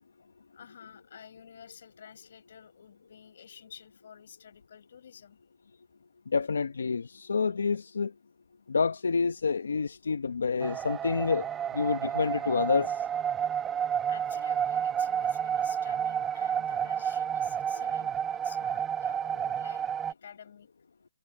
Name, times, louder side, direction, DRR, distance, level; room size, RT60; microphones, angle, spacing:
voice 1, 0.5-5.4 14.0-20.7, left 8 dB, 55° left, 6.2 m, -51 dB
voice 2, 6.3-8.1 8.7-11.5 11.7-13.0, left 5 dB, 85° left, 0.9 m, -28 dB
sound 1, 10.6-20.1, right 8 dB, 10° right, 0.9 m, -30 dB
hypercardioid pair, 160°, 0 cm